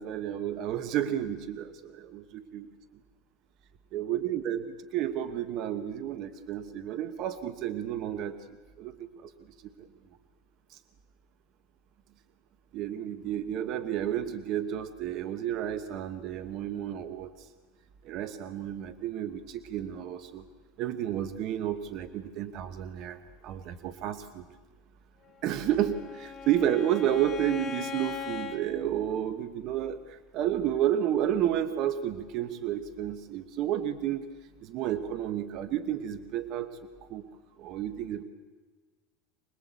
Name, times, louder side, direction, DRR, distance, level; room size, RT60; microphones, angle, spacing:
voice 1, 0.0-2.7 3.9-8.4 8.8-9.3 9.6-9.9 10.7-10.8 12.7-17.5 18.0-20.4 20.8-24.4 25.4-34.2 34.6-37.2 37.6-38.2, right 10 dB, 40° right, 11 dB, 1.1 m, -31 dB
Bowed string instrument, 25.4-28.6, left 6 dB, 20° left, 1.8 m, -39 dB
25.0 x 20.0 x 8.4 m, 1.4 s
supercardioid pair, 155°, 0 cm